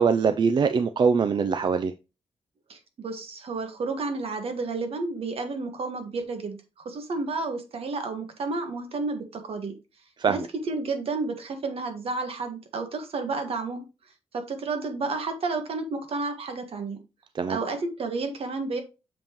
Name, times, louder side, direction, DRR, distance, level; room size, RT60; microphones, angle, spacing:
voice 1, 0.0-1.9 10.2-10.5 17.3-17.6, right 5 dB, 45° right, 0.4 m, -22 dB
voice 2, 2.7-6.6 6.8-9.7 10.3-10.4 10.7-13.8 14.3-17.0 17.5-18.8, right 3 dB, 65° right, 1.5 m, -31 dB
7.0 x 5.4 x 3.0 m
wide cardioid pair, 170°, 11 cm